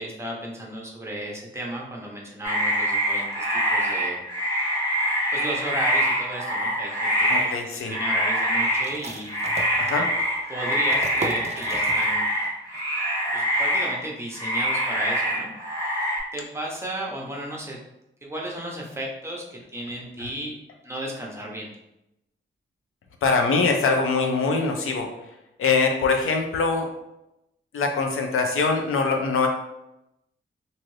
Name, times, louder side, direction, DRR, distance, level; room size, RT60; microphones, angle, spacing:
voice 1, 0.0-3.4 3.7-4.2 5.3-9.4 9.9-10.0 10.5-12.3 13.3-15.5 16.3-17.8 18.2-20.6 20.8-21.7, right 1 dB, 10° right, -2 dB, 0.7 m, -34 dB
sound 1, 2.4-7.6 7.9-9.0 9.3-14.1 14.3-16.2, equal, 20° left, 1.2 m, -25 dB
voice 2, 7.3-7.9 9.8-10.1 20.2-20.3 23.2-25.1 25.6-26.9 27.7-29.5, left 4 dB, 80° left, 3 dB, 0.5 m, -23 dB
sound 2, 8.8-12.5 12.7-12.8 13.3-13.7, right 3 dB, 30° right, 0.4 m, -37 dB
2.6 x 2.5 x 3.1 m, 0.87 s
cardioid pair, 90°, 21 cm